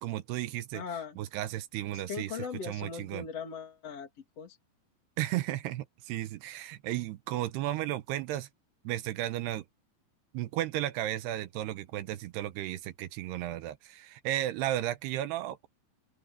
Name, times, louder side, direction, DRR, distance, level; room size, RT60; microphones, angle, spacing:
voice 1, 0.0-0.8 1.2-2.3 2.6-3.3 5.2-8.5 8.8-9.7 10.3-15.7, right 14 dB, 75° right, 2.8 m, -34 dB
voice 2, 0.7-1.2 1.9-4.6, left 6 dB, 40° left, 3.0 m, -39 dB
open air
omnidirectional pair, 4.9 m